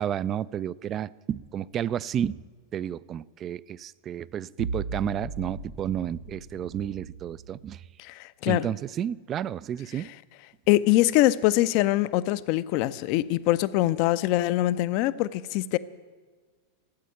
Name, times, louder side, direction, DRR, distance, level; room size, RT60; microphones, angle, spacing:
voice 1, 0.0-2.4 2.7-7.8 8.5-10.1, right 10 dB, 30° right, 21 dB, 0.3 m, -31 dB
sound 1, 4.6-7.7, right 3 dB, 70° right, 1.0 m, -37 dB
voice 2, 8.0-8.7 10.0-10.1 10.7-15.8, left 16 dB, 45° left, 16 dB, 0.4 m, -23 dB
13.5 x 8.3 x 9.1 m, 1.5 s
figure-of-eight pair, 90°, 0 cm